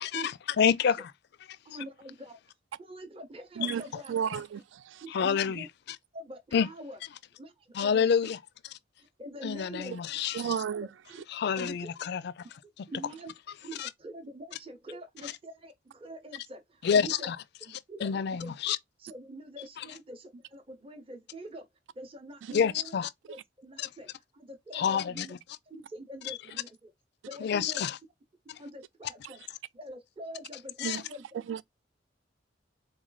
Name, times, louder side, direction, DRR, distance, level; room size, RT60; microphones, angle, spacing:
voice 1, 0.0-1.1 3.6-3.7 5.1-5.7 6.5-6.7 7.7-8.4 9.4-10.6 11.3-12.3 13.8-13.9 15.2-15.3 16.8-17.4 18.0-18.8 22.5-23.1 23.8-23.9 24.7-25.3 26.3-26.4 27.4-28.0 28.5-28.6 30.8-31.0, left 7 dB, 60° left, 0.4 m, -28 dB
voice 2, 1.6-2.4 2.8-4.1 5.0-5.7 6.1-7.0 7.4-8.3 9.0-9.9 10.7-11.2 11.5-11.9 12.9-13.3 13.6-17.3 17.7-18.5 19.0-21.7 21.9-22.9 23.3-25.3 25.7-26.9 27.3-27.8 28.6-31.4, right 1 dB, 30° right, 0.8 m, -45 dB
voice 3, 4.1-5.0 10.3-10.9 29.2-29.3 30.8-31.0 31.5-31.6, right 8 dB, 70° right, 0.3 m, -32 dB
3.9 x 3.1 x 3.9 m
head